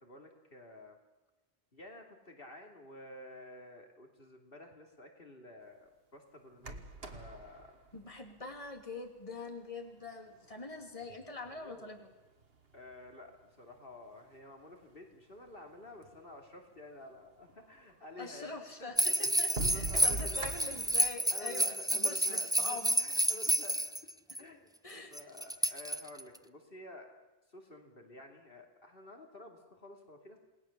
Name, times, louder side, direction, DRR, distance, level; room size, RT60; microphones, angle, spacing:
voice 1, 0.0-1.0 1.7-7.7 11.5-11.9 12.7-19.0 19.6-20.6 21.0-24.1 24.4-24.7 25.1-27.1 27.5-30.4, left 2 dB, 60° left, 3 dB, 3.0 m, -51 dB
sound 1, 6.6-8.9 9.9-10.0 10.6-11.8 12.4-13.2 14.0-14.1 14.3-14.4 15.0-15.1 15.4-16.2 17.8-17.9 18.5-18.6 19.2-21.1, right 2 dB, 70° right, 1.9 m, -42 dB
voice 2, 7.9-12.1 18.2-23.0 24.8-25.1 25.6-25.7, left 3 dB, 35° left, 3 dB, 3.0 m, -44 dB
sound 2, 19.0-24.4 25.1-26.4, right 1 dB, 5° right, 0.8 m, -30 dB
29.0 x 19.5 x 7.2 m, 1.1 s
omnidirectional pair, 1.0 m